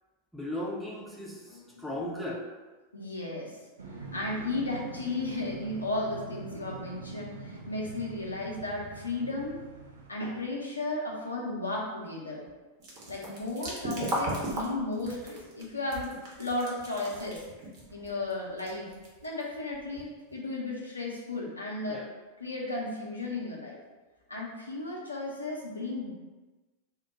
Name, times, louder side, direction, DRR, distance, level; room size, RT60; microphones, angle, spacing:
voice 1, 0.3-2.4 21.9-22.1, left 1 dB, ahead, -4 dB, 0.6 m, -36 dB
voice 2, 1.5-2.0 2.9-3.5 4.1-9.6 10.1-12.4 13.1-16.1 16.4-17.4 17.8-18.9 19.2-22.1 22.4-23.8 24.3-26.1, left 2 dB, 80° left, -3 dB, 0.6 m, -34 dB
sound 1, 3.8-10.1, right 3 dB, 70° right, 0.4 m, -44 dB
sound 2, 12.8-20.4, right 1 dB, 45° right, 0.9 m, -37 dB
2.2 x 2.1 x 3.8 m, 1.2 s
figure-of-eight pair, 90°, 0 cm